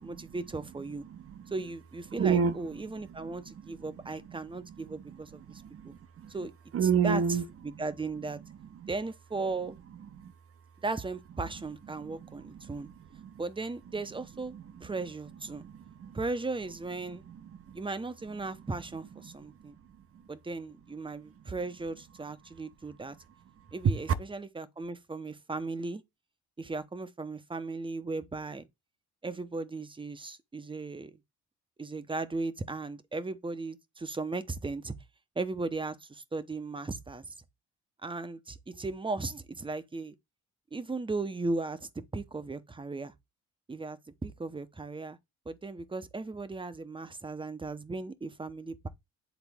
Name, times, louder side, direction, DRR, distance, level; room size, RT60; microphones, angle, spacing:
voice 1, 0.0-1.0 1.5-5.9 6.3-6.5 7.0-7.4 7.6-8.4 8.9-9.8 10.8-12.9 13.4-14.5 14.8-15.7 16.1-17.2 17.7-19.7 20.3-23.2 23.7-26.0 26.6-28.7 29.2-31.2 31.8-34.9 35.4-37.2 38.0-40.1 40.7-43.1 43.7-45.2 45.5-48.9, right 3 dB, 15° right, 0.8 m, -36 dB
voice 2, 1.1-1.5 2.2-2.5 2.9-3.5 4.8-5.2 5.5-6.3 6.7-7.5 8.8-8.9 10.2-10.3 12.0-12.8 13.2-13.4 14.5-14.6 15.6-16.1 17.3-17.8 19.2-19.4 23.8-23.9, right 6 dB, 50° right, 0.9 m, -31 dB
8.2 x 4.0 x 3.6 m
cardioid pair, 90°, 30 cm